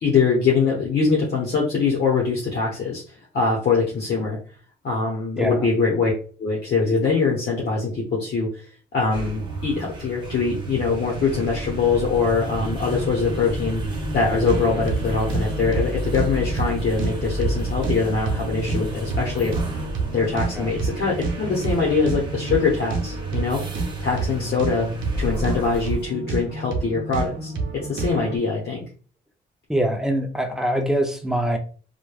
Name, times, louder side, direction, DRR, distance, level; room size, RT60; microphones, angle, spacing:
voice 1, 0.0-4.4 4.8-6.1 6.4-13.8 14.1-19.5 20.1-23.6 24.0-24.9 25.2-27.5 27.9-28.8, left 4 dB, 55° left, -3 dB, 0.9 m, -23 dB
sound 1, 9.0-26.1, right 1 dB, 25° right, 0.9 m, -31 dB
sound 2, 14.5-28.4, right 4 dB, 75° right, 0.7 m, -29 dB
voice 2, 29.7-31.6, right 1 dB, ahead, 5 dB, 0.5 m, -23 dB
3.0 x 2.2 x 2.3 m, 0.40 s
cardioid pair, 90°, 20 cm